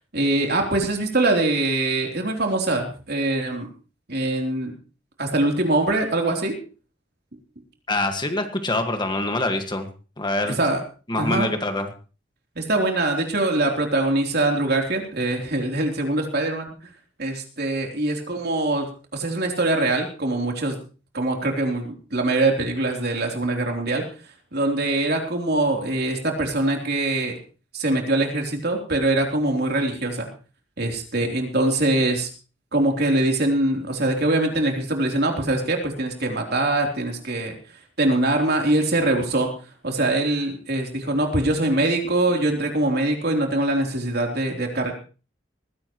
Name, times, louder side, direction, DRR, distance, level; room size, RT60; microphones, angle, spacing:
voice 1, 0.1-3.7 4.1-4.7 5.2-6.6 10.6-10.8 11.2-11.5 12.6-16.7 17.2-18.9 19.1-20.8 21.1-24.0 24.5-27.3 27.7-30.3 30.8-32.3 32.7-37.5 38.0-39.5 39.8-44.9, right 2 dB, 60° right, 2 dB, 3.6 m, -23 dB
voice 2, 7.9-9.9 10.2-10.6 11.1-11.9, left 2 dB, 25° left, 6 dB, 1.8 m, -25 dB
20.0 x 15.5 x 3.1 m, 0.36 s
head